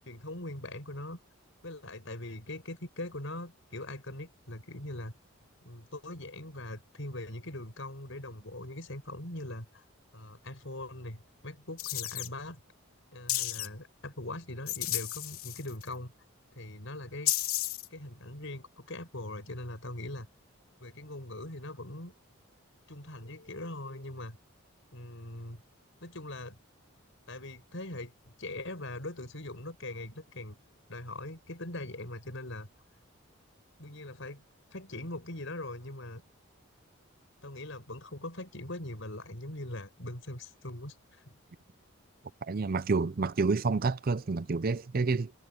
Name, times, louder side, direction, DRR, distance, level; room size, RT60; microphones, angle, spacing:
voice 1, 0.1-1.2 1.6-5.1 5.6-9.8 10.1-12.6 13.1-16.1 16.6-17.3 17.9-20.3 20.8-22.1 22.9-24.4 24.9-25.6 26.0-26.6 27.3-30.6 30.9-32.7 33.8-34.4 34.7-36.2 37.4-41.2, left 1 dB, 60° left, 5.9 m, -41 dB
sound 1, 11.8-12.3 13.3-13.7 14.7-15.9 17.3-17.9, left 14 dB, 90° left, 2.7 m, -32 dB
voice 2, 42.4-45.3, right 4 dB, 45° right, 0.5 m, -29 dB
head